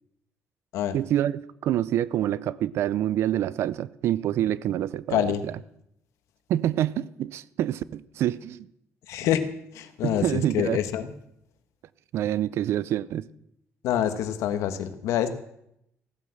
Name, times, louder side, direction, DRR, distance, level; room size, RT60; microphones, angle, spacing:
voice 1, 0.9-5.3 6.5-8.7 10.0-10.8 12.1-13.3, right 12 dB, 60° right, 0.5 m, -26 dB
voice 2, 5.1-5.4 9.1-9.4 9.7-11.1 13.8-15.3, left 10 dB, 90° left, 1.4 m, -26 dB
16.0 x 9.6 x 7.7 m
cardioid pair, 175°, 5 cm